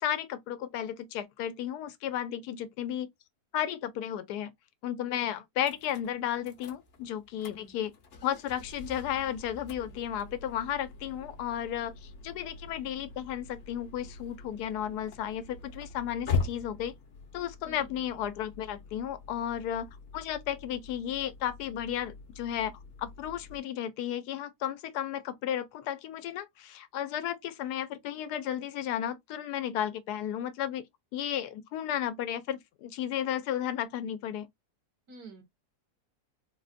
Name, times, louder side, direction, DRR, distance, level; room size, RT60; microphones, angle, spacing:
voice 1, 0.0-3.1 3.5-4.5 4.8-7.9 8.2-16.9 17.3-30.8 31.1-34.5, left 10 dB, 85° left, 1.1 m, -34 dB
sound 1, 5.6-23.6, left 4 dB, 55° left, 0.7 m, -42 dB
voice 2, 7.4-7.8 17.6-17.9 35.1-35.4, right 3 dB, 70° right, 1.5 m, -50 dB
3.9 x 2.1 x 2.5 m
omnidirectional pair, 1.7 m